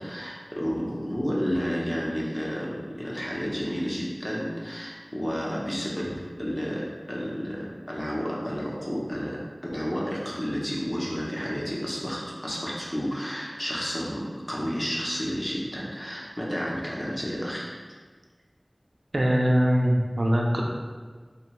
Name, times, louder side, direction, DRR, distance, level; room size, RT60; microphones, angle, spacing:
voice 1, 0.0-17.7, equal, 30° left, -4 dB, 0.6 m, -31 dB
voice 2, 19.1-20.6, equal, 80° right, -1 dB, 0.3 m, -22 dB
2.7 x 2.1 x 2.9 m, 1.5 s
wide cardioid pair, 40°, 0 cm